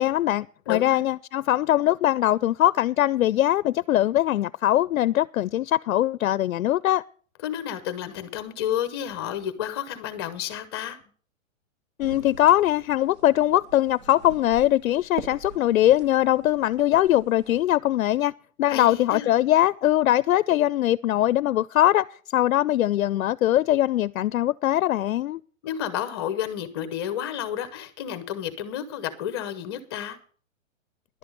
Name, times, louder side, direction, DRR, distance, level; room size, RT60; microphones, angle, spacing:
voice 1, 0.0-7.0 12.0-18.3 18.6-22.1 22.3-25.4, left 13 dB, 90° left, 0.5 m, -21 dB
voice 2, 0.7-1.0 7.4-11.0 18.7-19.3 25.6-30.2, left 10 dB, 20° left, 0.8 m, -31 dB
sound 1, 12.0-17.7, right 6 dB, 60° right, 2.1 m, -43 dB
11.5 x 6.0 x 9.0 m
hypercardioid pair, 170°, 40 cm